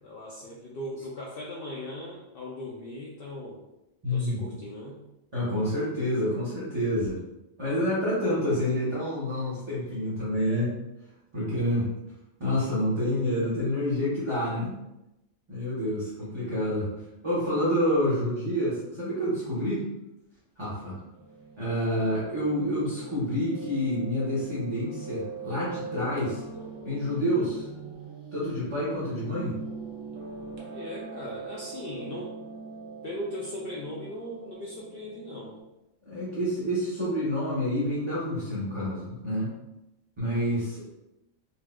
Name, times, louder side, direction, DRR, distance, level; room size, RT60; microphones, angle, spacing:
voice 1, 0.0-3.6 4.1-5.0 11.4-11.5 30.7-32.4 33.0-35.6, left 1 dB, 65° left, -4 dB, 0.5 m, -38 dB
voice 2, 4.0-4.6 5.3-7.2 7.6-10.7 11.3-11.8 12.4-14.7 15.5-16.9 17.2-19.8 20.6-21.0 21.6-26.4 26.8-27.7 28.3-29.6 36.0-39.5 40.2-40.8, equal, 25° right, -10 dB, 0.8 m, -28 dB
Piano, 21.2-35.6, right 5 dB, 55° right, 0.8 m, -42 dB
4.2 x 2.3 x 2.2 m, 0.92 s
omnidirectional pair, 1.4 m